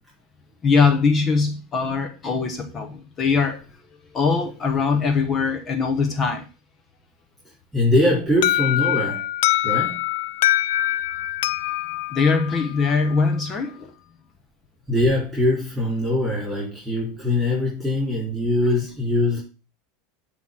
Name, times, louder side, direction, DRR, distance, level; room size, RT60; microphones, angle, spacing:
voice 1, 0.6-3.6 4.1-6.5 12.1-13.9, left 5 dB, 30° left, 1.1 m, -21 dB
voice 2, 7.7-9.2 9.6-10.0 14.9-19.4, left 1 dB, 10° right, 4.4 m, -22 dB
Alarm, 8.4-13.2, left 14 dB, 75° left, 0.4 m, -24 dB
9.4 x 3.2 x 5.6 m
supercardioid pair, 110°, 0 cm